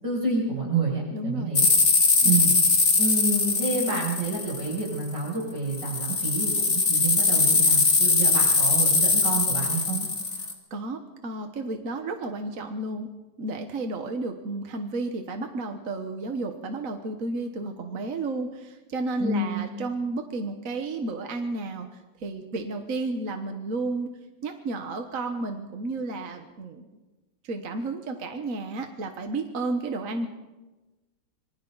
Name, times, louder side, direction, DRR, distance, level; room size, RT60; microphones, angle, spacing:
voice 1, 0.0-1.7 2.2-2.5 3.0-10.1 19.2-19.6, right 3 dB, 85° right, -4 dB, 8.2 m, -28 dB
voice 2, 1.1-1.5 2.2-2.4 10.7-13.1 13.4-24.1 24.4-26.9 27.4-30.3, right 2 dB, 50° right, 5 dB, 1.7 m, -32 dB
sound 1, 1.6-5.1 5.7-10.5, left 4 dB, 50° left, 2.6 m, -21 dB
26.5 x 24.0 x 4.1 m, 1.1 s
omnidirectional pair, 1.9 m